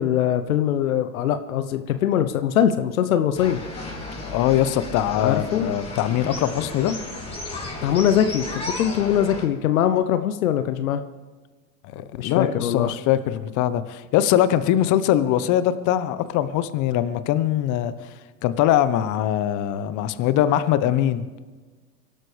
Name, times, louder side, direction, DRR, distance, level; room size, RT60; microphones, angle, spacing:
voice 1, 0.0-3.6 5.2-5.7 7.8-11.0 12.2-12.9, left 10 dB, 75° left, 10 dB, 0.9 m, -22 dB
sound 1, 3.3-9.5, left 2 dB, 15° left, 4.4 m, -34 dB
voice 2, 4.2-7.0 11.9-17.9 18.4-21.2, left 11 dB, 45° left, 13 dB, 1.1 m, -22 dB
23.5 x 12.0 x 3.4 m, 1.3 s
hypercardioid pair, 90°, 42 cm